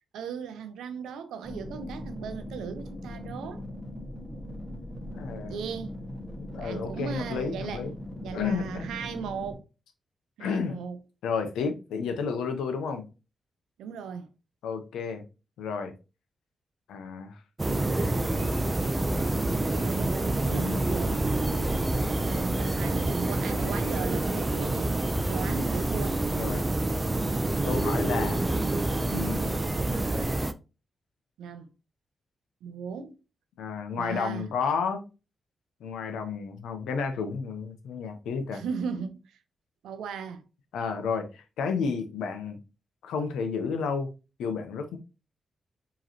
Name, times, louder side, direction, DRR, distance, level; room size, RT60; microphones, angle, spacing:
voice 1, 0.1-3.6 5.4-6.0 6.6-7.8 8.2-9.7 10.4-11.0 13.8-14.3 19.8-21.2 22.2-26.2 31.4-31.7 32.6-33.2 34.0-34.5 38.5-39.4 39.8-40.4, right 6 dB, 85° right, 0.5 m, -37 dB
sound 1, 1.4-9.6, left 1 dB, 5° right, 1.6 m, -40 dB
voice 2, 5.1-5.6 6.4-7.9 8.3-8.9 10.4-10.8 11.2-13.1 14.6-15.2 15.6-15.9 16.9-17.4 20.4-21.2 26.3-26.7 27.6-28.4 29.1-29.7 33.6-35.1 35.8-38.6 40.7-42.6 43.0-44.1 44.4-45.0, left 5 dB, 85° left, 0.7 m, -32 dB
sound 2, 17.6-30.5, right 2 dB, 25° right, 0.5 m, -27 dB
4.9 x 3.0 x 2.8 m
supercardioid pair, 45°, 0 cm